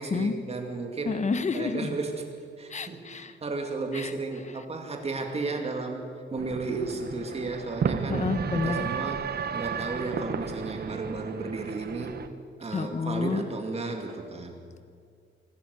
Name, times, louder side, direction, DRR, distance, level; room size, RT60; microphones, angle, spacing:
voice 1, 0.0-1.2 1.5-2.2 2.6-8.3 8.6-12.2 12.6-14.6, right 3 dB, 30° right, 3 dB, 2.5 m, -34 dB
voice 2, 1.1-1.9 2.7-3.3 3.9-4.1 4.5-4.6 8.1-8.9 12.7-13.4, left 4 dB, 35° left, 11 dB, 1.0 m, -29 dB
sound 1, 6.4-12.3, right 6 dB, 55° right, 1.0 m, -33 dB
25.0 x 13.0 x 8.4 m, 2.2 s
wide cardioid pair, 160°, 20 cm